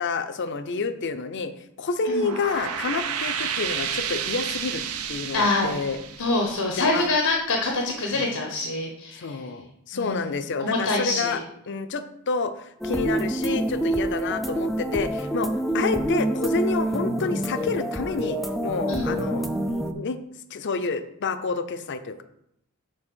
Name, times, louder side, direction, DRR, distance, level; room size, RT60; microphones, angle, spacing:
voice 1, 0.0-1.5 1.8-4.8 5.1-6.0 6.7-7.0 8.1-8.3 9.2-19.5 19.9-20.2 20.5-22.2, left 4 dB, 55° left, 11 dB, 0.5 m, -29 dB
sound 1, 2.0-7.3, right 7 dB, 85° right, 0.8 m, -31 dB
voice 2, 5.3-5.8 6.2-9.4 9.9-10.3 10.6-11.4 18.9-19.2, left 2 dB, 85° left, 1 dB, 1.0 m, -25 dB
sound 2, 12.8-19.9, right 1 dB, ahead, 0.4 m, -27 dB
6.3 x 4.1 x 6.1 m, 0.77 s
head